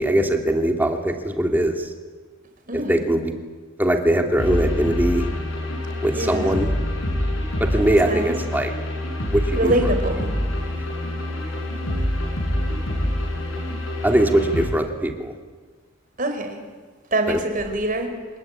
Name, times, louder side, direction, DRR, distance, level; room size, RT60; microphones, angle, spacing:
voice 1, 0.0-1.9 2.7-3.3 3.8-5.3 6.0-6.7 7.6-8.7 9.3-9.7 14.0-15.4 17.3-17.4, right 1 dB, 10° right, 3 dB, 2.5 m, -21 dB
voice 2, 2.7-3.0 6.1-6.7 7.7-8.3 9.6-10.3 16.2-16.6 17.1-18.1, right 1 dB, 40° right, 5 dB, 4.6 m, -25 dB
sound 1, 4.4-14.7, left 1 dB, 75° left, 6.9 m, -26 dB
27.0 x 21.0 x 8.9 m, 1.5 s
head